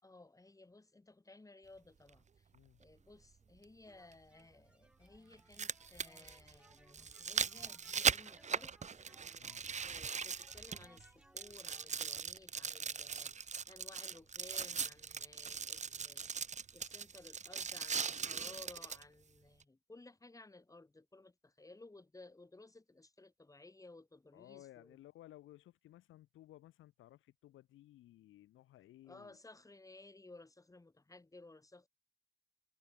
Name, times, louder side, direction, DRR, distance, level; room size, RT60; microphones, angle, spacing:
voice 1, 0.0-2.5 2.8-8.9 9.8-16.3 16.7-25.0 29.1-31.9, left 2 dB, 15° left, 5.2 m, -58 dB
sound 1, 2.1-2.2 4.1-4.2 5.3-11.1 11.4-19.0 19.6-19.7, right 6 dB, 35° right, 1.3 m, -39 dB
sound 2, 3.9-12.1, right 1 dB, 5° right, 6.8 m, -65 dB
voice 2, 24.3-29.4, left 14 dB, 85° left, 2.3 m, -58 dB
cardioid pair, 90°, 20 cm